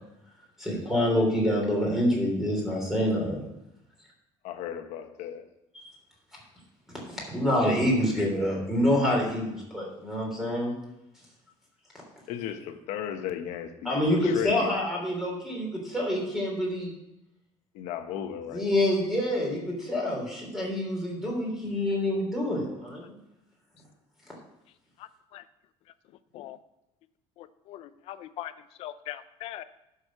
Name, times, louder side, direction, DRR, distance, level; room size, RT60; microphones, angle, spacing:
voice 1, 0.6-3.4 5.7-5.8 7.1-10.7 13.8-16.9 18.5-23.2, left 1 dB, 5° right, -2 dB, 3.3 m, -27 dB
voice 2, 4.4-5.5 12.3-14.8 17.7-18.7, left 9 dB, 75° left, 7 dB, 1.2 m, -35 dB
voice 3, 27.4-28.5 28.8-29.6, left 13 dB, 55° left, 13 dB, 0.6 m, -40 dB
11.0 x 6.5 x 6.0 m, 0.89 s
cardioid pair, 170°, 12 cm